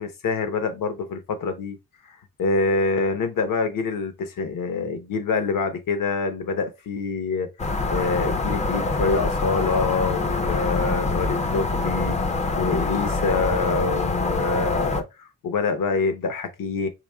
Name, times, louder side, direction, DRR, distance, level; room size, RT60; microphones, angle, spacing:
voice 1, 0.0-1.8 2.0-7.5 7.9-16.9, left 4 dB, 75° left, 0.9 m, -26 dB
california night time suburb ambience distant traffic, 7.6-15.0, left 3 dB, 20° left, 0.3 m, -25 dB
4.8 x 3.6 x 2.2 m
wide cardioid pair, 165°, 34 cm